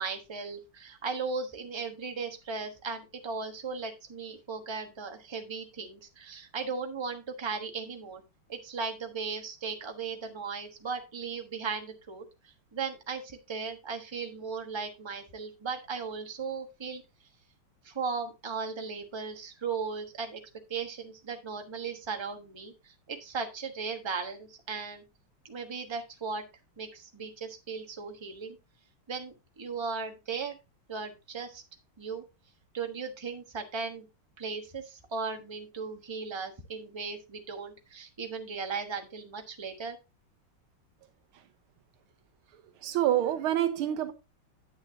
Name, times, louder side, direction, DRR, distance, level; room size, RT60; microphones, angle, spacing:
voice 1, 0.0-8.2 8.5-12.2 12.7-17.0 17.8-20.4 20.7-25.0 25.4-26.4 26.8-28.6 29.1-30.6 30.9-31.6 32.0-32.2 32.7-34.0 34.4-40.0, right 5 dB, 20° right, 0.9 m, -37 dB
voice 2, 42.8-44.1, right 12 dB, 85° right, 1.6 m, -27 dB
9.4 x 8.8 x 2.7 m
omnidirectional pair, 2.3 m